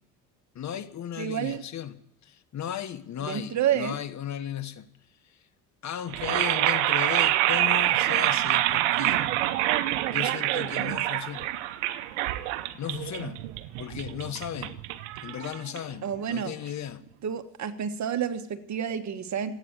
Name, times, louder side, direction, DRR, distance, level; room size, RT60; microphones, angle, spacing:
voice 1, 0.5-4.9 5.8-9.2 10.1-11.5 12.7-13.4 13.8-14.8 15.2-17.0, left 10 dB, 50° left, 1.3 m, -36 dB
voice 2, 1.2-1.6 3.2-4.0 16.0-16.5 17.2-19.6, right 9 dB, 50° right, 1.6 m, -29 dB
sound 1, 6.1-16.1, right 15 dB, 90° right, 0.9 m, -26 dB
16.0 x 8.8 x 9.7 m
supercardioid pair, 70°, 36 cm